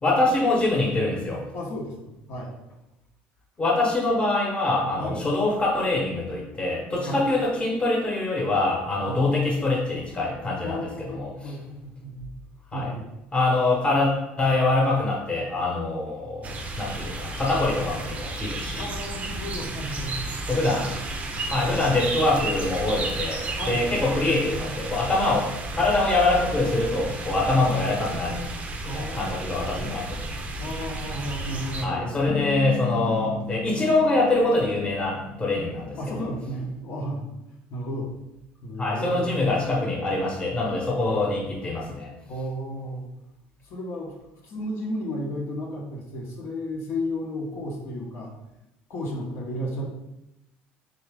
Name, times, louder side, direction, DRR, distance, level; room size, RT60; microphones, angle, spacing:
voice 1, 0.0-1.4 3.6-11.5 12.7-12.9 13.3-18.8 20.5-20.9 21.4-28.5 28.8-30.3 31.8-36.3 38.8-42.1, left 2 dB, 25° left, -1 dB, 1.0 m, -24 dB
voice 2, 1.5-2.6 5.0-5.2 7.1-7.2 9.0-9.2 10.6-12.3 12.7-13.1 18.8-20.3 20.7-20.9 23.5-23.9 28.8-29.9 30.6-32.2 36.0-37.3 37.7-38.1 38.6-39.4 42.3-43.0 43.6-44.2 44.4-48.3 48.9-49.9, equal, 60° left, -2 dB, 0.9 m, -33 dB
sound 1, 16.4-31.9, right 2 dB, 30° right, 0.5 m, -33 dB
Bass guitar, 32.3-36.6, left 3 dB, 40° left, 0.4 m, -35 dB
3.6 x 2.8 x 3.4 m, 0.89 s
cardioid pair, 110°, 5 cm